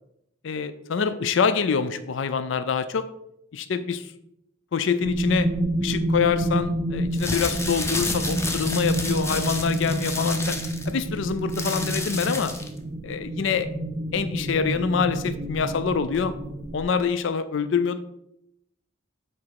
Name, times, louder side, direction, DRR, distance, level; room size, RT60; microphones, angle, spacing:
voice 1, 0.4-3.1 3.5-4.1 4.7-5.5 5.8-10.6 10.9-12.5 13.0-13.7 14.1-16.3 16.7-18.0, left 6 dB, 65° left, 11 dB, 0.4 m, -25 dB
sound 1, 5.0-16.8, right 1 dB, 30° right, 0.6 m, -29 dB
sound 2, 7.0-12.8, left 2 dB, 15° left, 0.7 m, -31 dB
7.3 x 4.2 x 4.6 m, 0.80 s
head